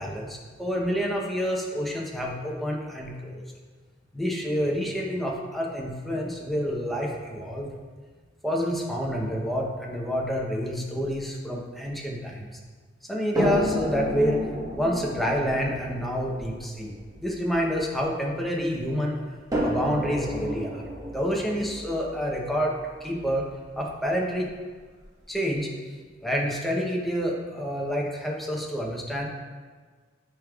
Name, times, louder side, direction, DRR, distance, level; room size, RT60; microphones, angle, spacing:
voice 1, 0.0-3.4 4.1-7.7 8.4-12.6 13.1-14.4 14.7-16.9 17.2-19.2 19.6-20.8 21.1-22.7 23.0-23.5 23.8-24.5 25.3-26.0 26.2-29.3, equal, ahead, -2 dB, 0.8 m, -28 dB
sound 1, 13.3-18.6 19.5-23.5 24.4-24.5 25.0-25.1, equal, 20° right, 1.3 m, -32 dB
9.3 x 5.2 x 2.4 m, 1.5 s
head